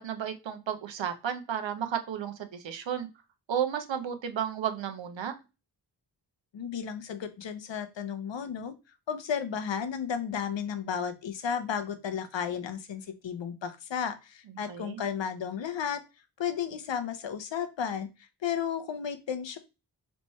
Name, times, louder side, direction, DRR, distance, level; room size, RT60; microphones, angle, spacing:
voice 1, 0.0-3.1 3.5-5.3 14.7-15.0, right 8 dB, 85° right, 8 dB, 0.8 m, -33 dB
voice 2, 6.5-8.7 9.1-16.0 16.4-19.6, left 7 dB, 80° left, 10 dB, 0.8 m, -33 dB
3.4 x 3.1 x 4.1 m, 0.27 s
wide cardioid pair, 100°, 43 cm